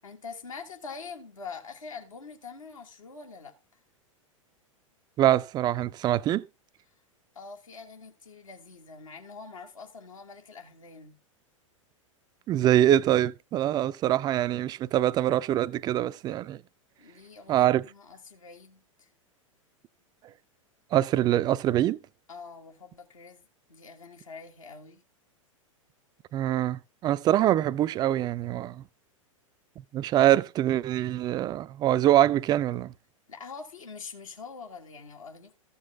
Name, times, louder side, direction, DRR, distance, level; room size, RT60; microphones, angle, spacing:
voice 1, 0.0-3.5 7.4-11.2 17.0-19.1 22.3-25.0 33.3-35.6, left 5 dB, 75° left, 2.0 m, -44 dB
voice 2, 5.2-6.5 12.5-16.6 17.5-17.9 20.9-22.0 26.3-28.8 29.9-32.9, right 12 dB, 25° right, 0.4 m, -24 dB
14.0 x 7.0 x 3.5 m
figure-of-eight pair, 95°, 17 cm